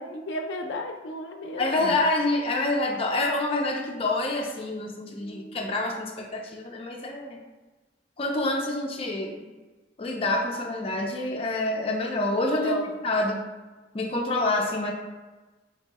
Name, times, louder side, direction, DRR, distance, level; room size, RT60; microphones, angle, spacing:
voice 1, 0.0-2.0 5.1-5.6 12.3-12.9, equal, 90° left, 4 dB, 0.4 m, -34 dB
voice 2, 1.6-7.4 8.2-9.5 10.0-12.8 13.0-13.5 13.9-14.9, left 2 dB, 30° left, 0 dB, 0.4 m, -27 dB
2.7 x 2.6 x 4.1 m, 1.2 s
head